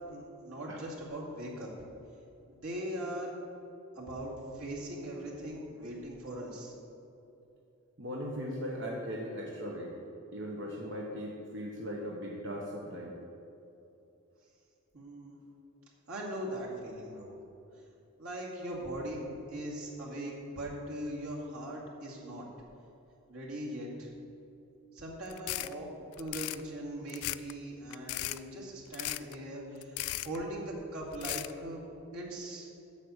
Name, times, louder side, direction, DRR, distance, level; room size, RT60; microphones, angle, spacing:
voice 1, 0.0-1.7 2.5-3.4 3.9-6.7 14.9-15.4 16.1-17.3 18.2-22.5 23.3-24.1 24.9-25.9 26.2-31.8 32.1-32.7, right 1 dB, 85° right, -4 dB, 2.3 m, -40 dB
voice 2, 8.0-9.9 10.3-13.1, equal, 55° right, -2 dB, 1.0 m, -38 dB
sound 1, 25.3-25.7 26.1-26.6 27.1-27.5 27.9-28.4 28.9-29.3 29.8-30.4 31.1-31.5, left 16 dB, 80° left, 0.3 m, -36 dB
8.4 x 5.7 x 8.0 m, 2.8 s
head